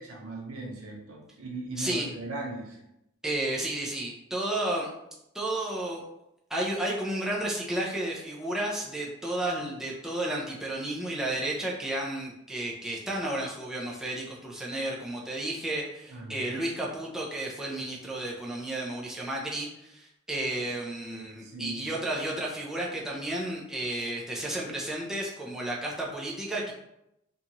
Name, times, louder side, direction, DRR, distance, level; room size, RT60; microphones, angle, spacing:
voice 1, 0.0-2.8 16.1-16.6 21.1-21.8, right 2 dB, 90° right, 0 dB, 0.7 m, -39 dB
voice 2, 1.8-2.1 3.2-4.9 5.3-6.0 6.5-26.7, right 1 dB, 5° right, -4 dB, 0.3 m, -32 dB
2.6 x 2.3 x 2.8 m, 0.84 s
head